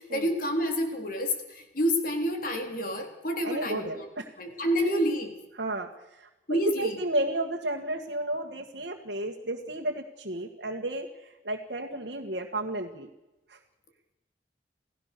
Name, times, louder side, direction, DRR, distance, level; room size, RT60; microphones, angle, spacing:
voice 1, 0.0-4.1 4.4-5.3 6.5-7.0, equal, 50° left, 4 dB, 3.8 m, -28 dB
voice 2, 3.4-4.2 5.6-5.9 6.5-13.1 13.5-13.6, right 1 dB, 65° right, 0 dB, 1.8 m, -32 dB
29.0 x 17.0 x 6.9 m, 1.0 s
head